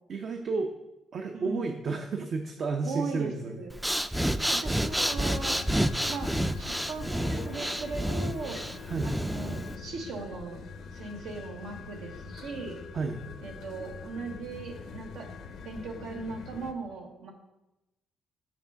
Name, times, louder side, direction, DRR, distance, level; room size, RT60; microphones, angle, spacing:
voice 1, 0.1-0.7 1.1-3.7 8.9-9.2 12.9-13.2, right 4 dB, 55° right, 4 dB, 0.6 m, -32 dB
voice 2, 1.3-1.7 2.8-3.7 4.5-5.6 6.1-8.6 9.0-10.6 10.9-12.8 13.4-15.3 15.6-17.3, right 3 dB, 90° right, 1 dB, 1.2 m, -38 dB
Breathing, 3.7-9.8, equal, 5° right, 0.3 m, -29 dB
sound 1, 5.1-16.7, left 5 dB, 75° left, 0.6 m, -44 dB
5.9 x 4.4 x 5.7 m, 0.95 s
cardioid pair, 90°, 0 cm